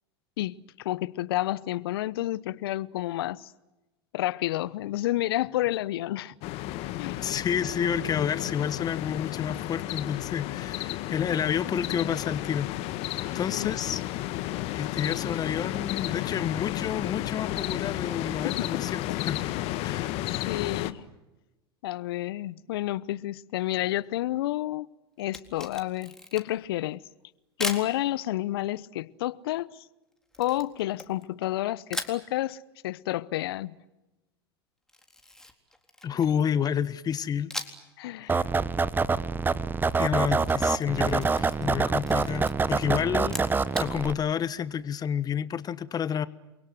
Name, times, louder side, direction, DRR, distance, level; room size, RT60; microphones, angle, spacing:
voice 1, 0.4-3.5 4.1-6.3 7.0-7.4 13.5-13.8 18.4-18.8 20.3-21.0 21.8-24.9 25.2-27.0 27.6-29.8 30.4-33.8 38.0-38.4, left 15 dB, 65° left, 0.9 m, -30 dB
sound 1, 6.4-20.9, left 15 dB, 50° left, 1.6 m, -32 dB
voice 2, 7.2-12.7 12.9-14.0 14.7-19.4 19.8-20.2 36.0-37.5 38.2-38.4 40.0-46.3, left 8 dB, 30° left, 1.5 m, -30 dB
Camera, 25.2-26.7 27.6-27.9 30.3-31.5 31.9-32.2 34.9-36.4 37.5-37.9 38.3-38.4 40.3-41.7 42.0-42.5 43.2-43.9, left 1 dB, 5° left, 3.9 m, -38 dB
sound 2, 38.3-44.1, right 4 dB, 15° right, 1.1 m, -26 dB
29.5 x 23.5 x 7.9 m
hypercardioid pair, 90°, 13 cm